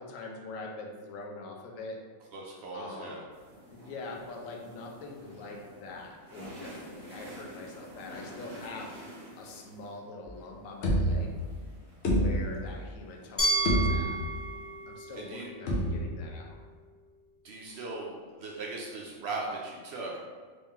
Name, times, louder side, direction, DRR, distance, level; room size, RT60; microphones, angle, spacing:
voice 1, 0.0-2.0 2.7-3.2 3.7-11.3 12.1-14.2 14.9-16.6 17.7-17.8, left 3 dB, 80° left, 0 dB, 1.0 m, -43 dB
voice 2, 2.3-3.2 15.1-15.5 17.4-18.1 18.4-20.2, right 3 dB, 65° right, -2 dB, 0.7 m, -38 dB
sound 1, 3.3-14.8, right 1 dB, 35° right, 0.9 m, -49 dB
sound 2, 10.3-10.4 10.8-11.6 12.0-12.9 13.2-13.3 13.7-14.4 15.7-16.3, equal, 55° left, 0.9 m, -28 dB
Glass, 13.4-16.3, right 2 dB, 30° left, 0.6 m, -32 dB
3.2 x 2.9 x 3.5 m, 1.5 s
omnidirectional pair, 1.4 m